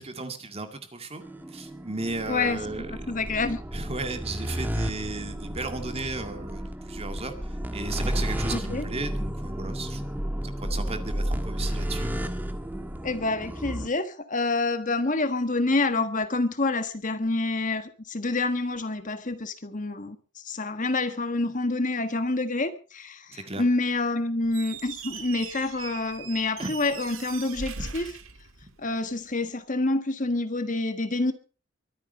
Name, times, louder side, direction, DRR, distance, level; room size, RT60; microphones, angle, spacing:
voice 1, 0.0-3.1 3.7-10.0 10.4-12.1 23.3-23.6 26.6-26.7, right 3 dB, 30° right, 2.1 m, -35 dB
sound 1, 1.2-13.9, equal, 10° right, 1.3 m, -32 dB
voice 2, 2.3-2.6 2.9-3.6 8.5-8.8 13.0-20.2 20.4-28.0 28.8-31.3, left 2 dB, 40° left, 1.5 m, -27 dB
Squeak, 24.4-29.1, right 5 dB, 75° right, 1.9 m, -40 dB
23.0 x 9.2 x 5.4 m
head